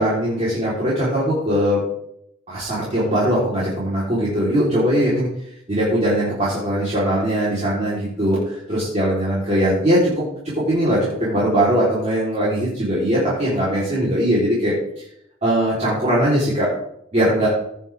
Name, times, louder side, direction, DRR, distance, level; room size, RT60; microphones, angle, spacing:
voice 1, 0.0-1.8 2.5-5.3 5.7-10.2 10.7-14.7 15.4-16.7 17.1-17.5, equal, 35° right, -9 dB, 3.8 m, -20 dB
17.5 x 7.6 x 3.5 m, 0.75 s
head